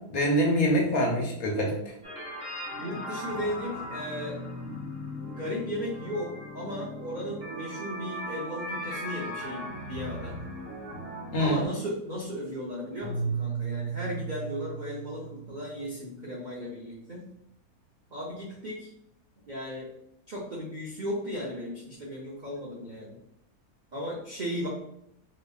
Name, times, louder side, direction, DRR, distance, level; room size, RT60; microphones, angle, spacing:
voice 1, 0.1-1.9 11.3-11.7, equal, 65° left, -1 dB, 1.2 m, -25 dB
sound 1, 2.0-11.6, left 1 dB, 50° right, 1.4 m, -38 dB
voice 2, 2.7-4.4 5.2-10.4 11.4-17.2 18.1-18.9 19.5-19.9 20.3-23.2 23.9-24.7, equal, 75° right, -4 dB, 0.4 m, -36 dB
Keyboard (musical), 13.0-16.1, right 6 dB, 10° left, 1.1 m, -35 dB
4.1 x 2.8 x 2.3 m, 0.76 s
omnidirectional pair, 1.7 m